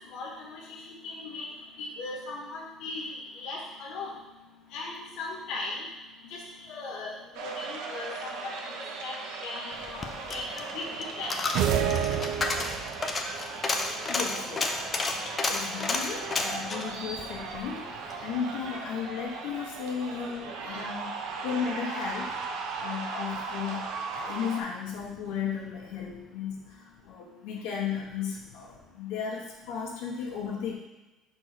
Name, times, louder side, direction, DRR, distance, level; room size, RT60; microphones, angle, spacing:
voice 1, 0.1-1.5 1.8-4.1 4.7-5.9 6.2-9.2 9.4-10.9 11.2-11.3, left 3 dB, 55° left, -3 dB, 1.0 m, -38 dB
sound 1, 7.3-24.6, right 4 dB, 80° right, 0.9 m, -38 dB
Coin (dropping), 9.8-18.2 18.6-18.7, left 3 dB, 20° left, 0.5 m, -32 dB
sound 2, 11.5-13.1, right 9 dB, 55° right, 0.5 m, -27 dB
voice 2, 14.1-14.7 15.3-17.9 18.2-22.3 22.8-30.7, left 7 dB, 90° left, -2 dB, 1.5 m, -35 dB
5.9 x 4.4 x 4.6 m, 1.1 s
cardioid pair, 180°, 0 cm